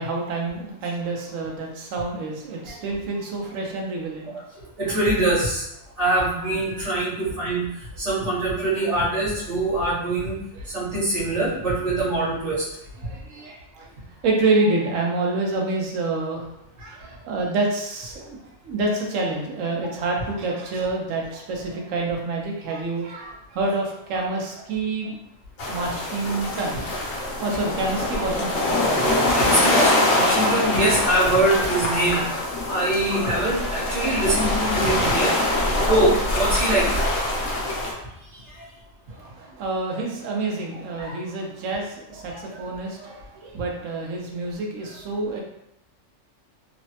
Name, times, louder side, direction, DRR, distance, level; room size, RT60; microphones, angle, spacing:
voice 1, 0.0-4.3 10.5-10.7 13.0-13.9 14.2-16.5 16.8-18.4 18.6-25.2 25.7-26.9 27.4-28.7 39.1-45.4, right 3 dB, 85° right, 0 dB, 1.0 m, -27 dB
voice 2, 4.8-5.6 6.0-7.7 8.0-10.4 10.7-12.7 23.2-23.3 29.0-32.3 32.6-35.3 35.8-36.9 38.3-38.7 41.0-41.1 42.3-42.4, right 1 dB, 65° right, -8 dB, 1.3 m, -23 dB
sound 1, 25.6-37.9, left 1 dB, 90° left, 1.1 m, -24 dB
3.1 x 2.1 x 2.7 m, 0.82 s
omnidirectional pair, 1.3 m